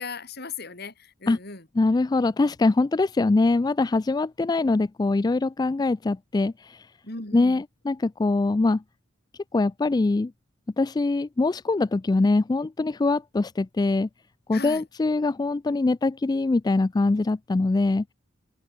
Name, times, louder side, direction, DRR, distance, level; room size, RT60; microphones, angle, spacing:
voice 1, 0.0-1.7 7.0-7.6 14.5-14.8, left 4 dB, 55° left, 5.1 m, -37 dB
voice 2, 1.8-6.9 7.3-8.8 9.5-10.3 10.8-14.1 14.5-18.0, left 3 dB, 20° left, 0.3 m, -23 dB
open air
head